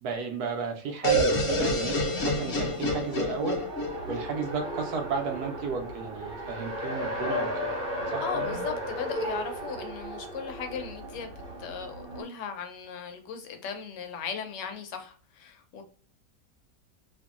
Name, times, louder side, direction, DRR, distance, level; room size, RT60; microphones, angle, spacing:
voice 1, 0.0-3.6 4.1-7.8 8.1-8.6, right 5 dB, 70° right, 1.1 m, -33 dB
sound 1, 1.0-4.8, equal, 60° left, 0.8 m, -28 dB
Race car auto racing, 2.2-12.2, equal, 40° right, 1.0 m, -35 dB
voice 2, 8.2-15.8, left 6 dB, 85° left, 1.2 m, -37 dB
2.9 x 2.6 x 2.3 m
omnidirectional pair, 1.8 m